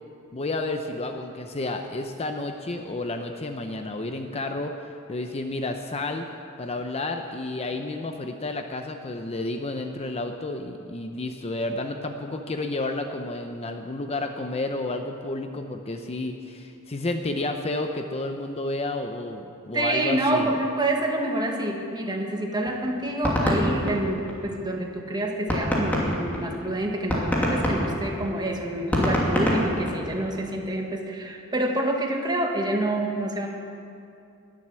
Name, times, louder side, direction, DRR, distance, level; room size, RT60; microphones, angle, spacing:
voice 1, 0.3-6.3 6.6-20.5, left 2 dB, 30° left, 5 dB, 0.7 m, -31 dB
voice 2, 19.7-33.5, right 1 dB, 20° right, 1 dB, 1.6 m, -27 dB
sound 1, 22.7-24.7 25.1-25.2 25.5-30.4, equal, 10° left, 2.6 m, -25 dB
20.5 x 7.7 x 7.5 m, 2.6 s
head